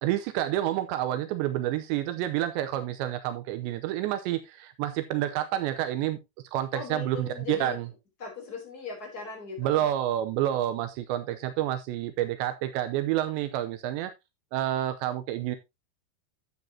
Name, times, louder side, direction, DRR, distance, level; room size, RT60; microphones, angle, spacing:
voice 1, 0.0-6.2 6.5-7.8 9.6-14.1 14.5-15.6, right 13 dB, 85° right, 10 dB, 2.9 m, -29 dB
voice 2, 6.7-7.8 8.2-9.9, left 5 dB, 25° left, 1 dB, 3.2 m, -39 dB
12.0 x 8.0 x 2.8 m, 0.22 s
omnidirectional pair, 5.2 m